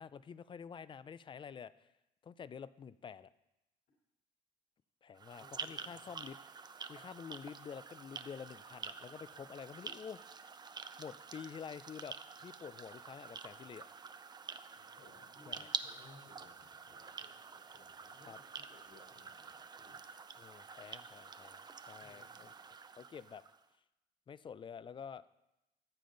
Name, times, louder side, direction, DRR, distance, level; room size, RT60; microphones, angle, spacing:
voice 1, 0.0-1.9 2.2-3.3 5.0-6.4 6.9-10.5 11.0-13.9 15.5-15.7 18.3-18.4 20.4-22.5 23.0-23.4 24.3-25.2, left 7 dB, 30° left, 17 dB, 0.4 m, -49 dB
sound 1, 5.1-23.6, right 5 dB, 25° right, 0.5 m, -48 dB
voice 2, 5.4-6.1 14.8-20.0 21.9-22.4, left 3 dB, 60° left, -3 dB, 3.3 m, -63 dB
14.5 x 8.5 x 3.9 m, 0.94 s
cardioid pair, 110°, 17 cm